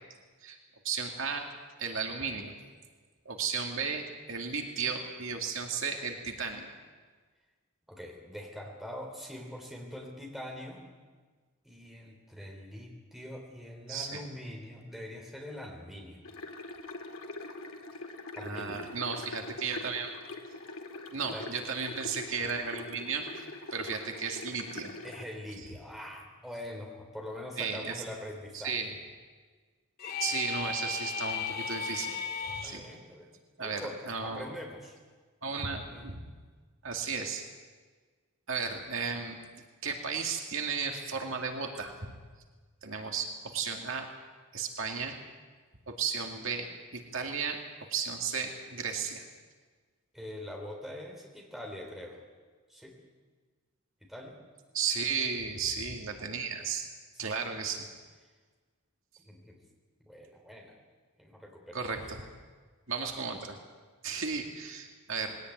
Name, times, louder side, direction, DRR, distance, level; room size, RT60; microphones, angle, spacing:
voice 1, 0.8-1.5 1.8-2.6 3.3-6.7 13.9-14.2 18.4-20.1 21.1-23.5 23.7-24.9 27.6-28.0 28.5-28.9 30.2-32.1 32.5-32.8 33.6-34.5 35.4-36.2 36.8-37.4 38.5-39.4 39.8-42.1 42.8-44.1 44.5-45.1 45.9-47.6 47.9-49.3 54.7-56.9 57.2-57.9 61.7-62.2 62.9-63.6 64.0-65.4, right 5 dB, 60° right, 3 dB, 2.3 m, -34 dB
voice 2, 7.9-10.8 11.6-16.2 18.4-18.9 21.3-21.5 25.0-28.8 32.6-33.3 33.6-35.0 35.7-36.1 50.1-52.2 52.7-53.0 54.1-54.4 56.6-56.7 57.1-57.3 59.2-59.6 60.0-60.8 61.2-61.8, left 1 dB, ahead, 0 dB, 3.6 m, -43 dB
sound 1, 16.2-25.2, left 2 dB, 70° left, 2.2 m, -43 dB
sound 2, 30.0-32.8, left 4 dB, 45° left, 2.0 m, -35 dB
21.0 x 17.5 x 9.4 m, 1.5 s
head